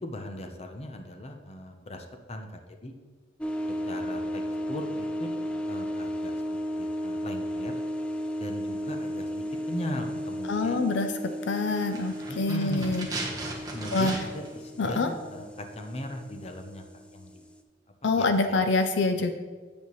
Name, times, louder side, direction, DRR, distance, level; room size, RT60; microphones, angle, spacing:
voice 1, 0.0-2.9 3.9-4.4 4.7-5.3 5.7-6.4 6.8-7.7 8.4-10.9 12.3-12.9 13.7-16.8 17.1-17.4 18.0-18.5, left 1 dB, 35° left, 5 dB, 0.7 m, -38 dB
sound 1, 3.4-17.6, equal, 5° left, 0.3 m, -34 dB
voice 2, 10.5-11.1 11.5-13.1 13.9-14.1 14.8-15.1 18.0-19.3, left 3 dB, 70° left, 7 dB, 0.5 m, -25 dB
sound 2, 11.7-14.5 14.8-14.9, right 2 dB, 20° right, 1.2 m, -37 dB
8.6 x 8.3 x 3.1 m, 1.5 s
head